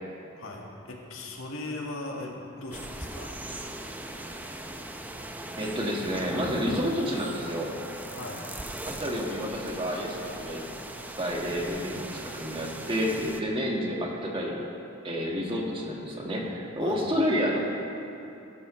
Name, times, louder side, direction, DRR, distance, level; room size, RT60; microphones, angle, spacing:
voice 1, 0.4-3.3 8.1-8.5 16.8-17.0, left 2 dB, 85° left, -1 dB, 1.9 m, -38 dB
sound 1, 2.7-13.4, right 1 dB, 10° right, 0.6 m, -39 dB
voice 2, 5.6-7.7 8.8-10.6 11.2-14.6 15.0-17.6, equal, 25° right, -2 dB, 1.7 m, -29 dB
17.5 x 12.0 x 3.2 m, 2.9 s
head